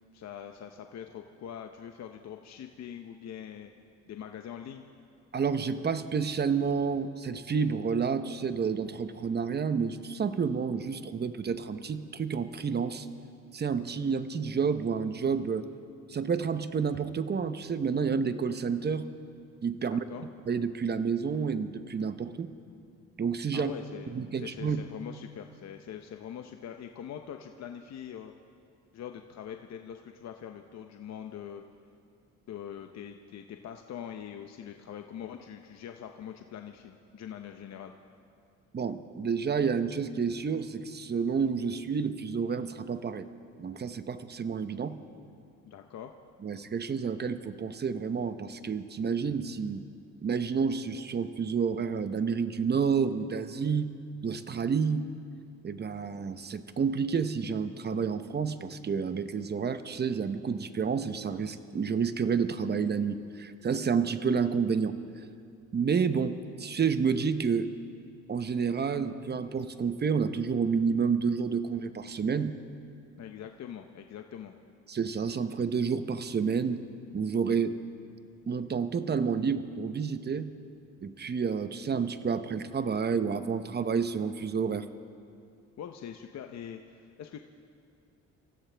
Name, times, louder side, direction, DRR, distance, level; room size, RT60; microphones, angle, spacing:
voice 1, 0.1-3.7 4.1-4.8 19.9-20.3 23.5-28.3 28.9-31.6 32.5-37.9 45.7-46.1 73.2-74.5 85.8-87.4, left 9 dB, 60° left, 5 dB, 0.8 m, -43 dB
voice 2, 5.3-13.1 13.5-15.6 16.1-19.1 19.6-20.0 20.5-22.5 23.2-23.7 24.1-24.8 38.7-43.3 43.6-45.0 46.4-49.9 50.2-53.9 54.2-55.1 55.6-64.9 65.7-67.7 68.3-72.6 74.9-76.8 77.1-77.8 78.5-80.5 81.0-84.9, right 6 dB, 35° right, 11 dB, 0.9 m, -29 dB
26.0 x 15.0 x 3.4 m, 2.4 s
cardioid pair, 90°, 30 cm